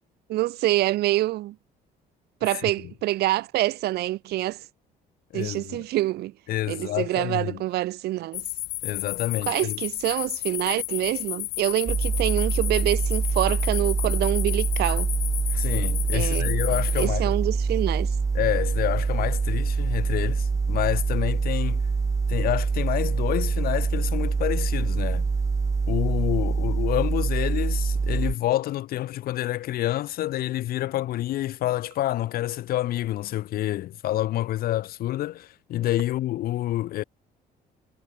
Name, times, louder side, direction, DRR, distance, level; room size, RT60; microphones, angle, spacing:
voice 1, 0.3-1.5 2.4-4.6 5.3-6.3 6.7-8.4 9.5-15.1 16.1-16.5 17.0-18.1, right 16 dB, 75° right, 1.0 m, -26 dB
voice 2, 5.3-5.8 6.5-7.6 8.8-9.8 15.5-17.3 18.3-21.8 22.3-25.3 25.9-37.0, left 14 dB, 60° left, 0.6 m, -28 dB
sound 1, 8.3-17.1, left 20 dB, 90° left, 1.6 m, -32 dB
sound 2, 11.9-28.3, right 4 dB, 20° right, 0.5 m, -25 dB
cardioid pair, 110°, 17 cm